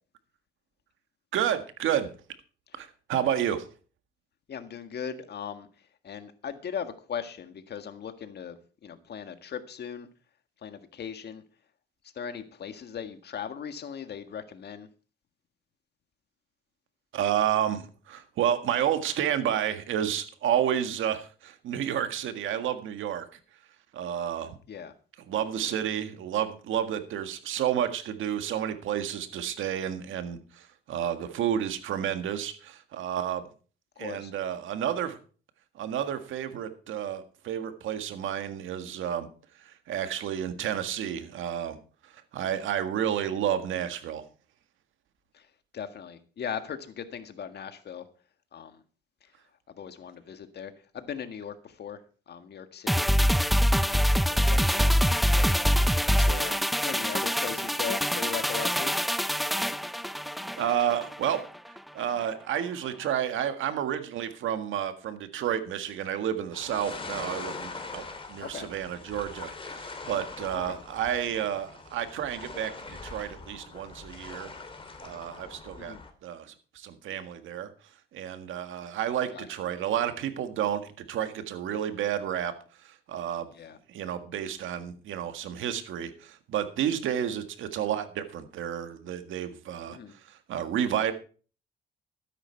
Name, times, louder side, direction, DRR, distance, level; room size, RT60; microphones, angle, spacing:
voice 1, 1.3-2.1 2.7-3.7 17.1-23.3 23.9-24.6 25.3-33.4 34.0-35.2 35.8-39.3 39.6-41.8 42.0-44.2 60.6-61.4 61.9-74.5 75.0-76.0 76.2-77.7 78.1-82.5 82.8-83.5 83.9-91.1, right 10 dB, 80° right, 9 dB, 1.8 m, -30 dB
voice 2, 4.5-5.7 6.0-10.1 10.6-11.4 12.1-14.9 24.7-24.9 25.8-25.9 34.0-34.3 45.3-45.5 45.7-48.1 48.5-48.8 49.7-52.0 52.3-53.1 53.8-54.0 54.3-55.2 56.1-58.9 68.4-68.7 70.5-70.8 75.8-76.0 79.3-79.5 83.5-83.8 89.9-90.1, left 7 dB, 55° left, 9 dB, 1.8 m, -39 dB
sound 1, 52.9-61.4 61.8-61.9, equal, ahead, 0.6 m, -25 dB
sound 2, 66.5-76.1, left 3 dB, 25° left, 2.8 m, -42 dB
13.0 x 10.5 x 4.5 m, 0.39 s
cardioid pair, 90°, 20 cm